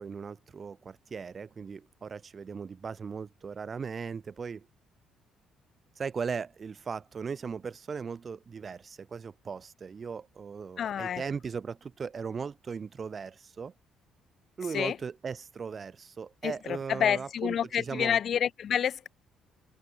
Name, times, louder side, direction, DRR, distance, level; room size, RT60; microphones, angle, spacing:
voice 1, 0.0-4.7 6.0-13.7 14.6-18.2, right 5 dB, 35° right, 2.5 m, -38 dB
voice 2, 10.8-11.2 14.7-14.9 16.4-16.5 17.0-19.1, left 9 dB, 55° left, 0.8 m, -28 dB
cardioid pair, 115°, 0 cm